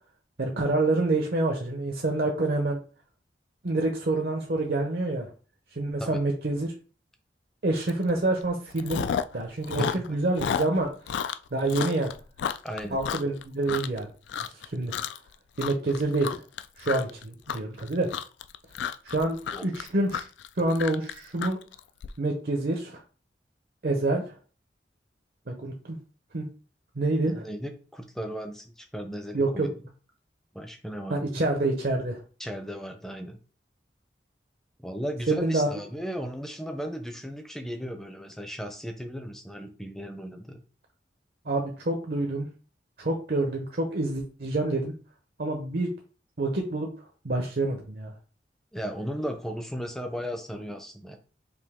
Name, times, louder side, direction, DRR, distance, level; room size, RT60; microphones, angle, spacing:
voice 1, 0.4-2.8 3.6-5.3 5.7-6.7 7.6-9.0 9.3-10.9 11.5-12.1 12.9-14.1 14.6-14.9 15.6-16.4 16.8-18.1 19.0-19.4 19.6-20.3 20.6-21.6 22.2-23.0 23.8-24.4 25.5-26.0 26.3-26.5 27.0-27.5 29.3-29.7 31.1-32.2 35.3-35.7 41.5-42.5 43.0-44.9 45.4-45.9 46.4-46.9 47.2-48.1, right 2 dB, 55° right, 1 dB, 0.6 m, -27 dB
Chewing mastication, 7.9-8.1 8.4-9.4 9.6-14.0 14.3-14.7 14.9-15.3 15.6-22.1, left 8 dB, 85° left, 0.3 m, -32 dB
voice 2, 12.6-13.0 19.5-19.6 27.2-29.8 30.5-31.4 32.4-33.4 34.8-40.6 48.7-51.2, equal, ahead, 5 dB, 0.5 m, -36 dB
5.1 x 2.7 x 3.5 m, 0.38 s
head